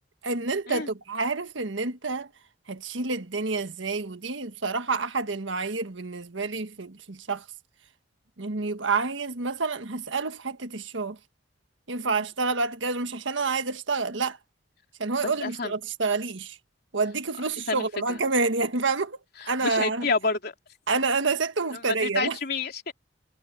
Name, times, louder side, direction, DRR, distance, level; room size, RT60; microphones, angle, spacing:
voice 1, 0.2-2.3 2.7-7.5 8.4-11.2 11.9-14.4 15.0-16.6 16.9-19.2 19.5-20.1 20.9-22.4, right 4 dB, 85° right, 1.5 m, -28 dB
voice 2, 15.2-15.7 17.7-17.9 19.6-20.5 22.0-22.9, left 4 dB, 55° left, 3.6 m, -28 dB
head